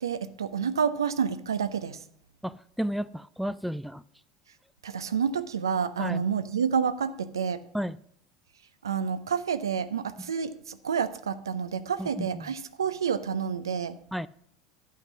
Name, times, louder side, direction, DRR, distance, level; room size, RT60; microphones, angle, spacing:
voice 1, 0.0-2.0 4.8-7.6 8.8-14.0, right 7 dB, 80° right, 13 dB, 0.6 m, -29 dB
voice 2, 2.4-4.0 6.0-6.2 7.7-8.0 10.2-10.3 12.0-12.5 14.1-14.3, equal, ahead, 16 dB, 0.3 m, -33 dB
11.5 x 5.6 x 6.1 m, 0.67 s
figure-of-eight pair, 75°, 2 cm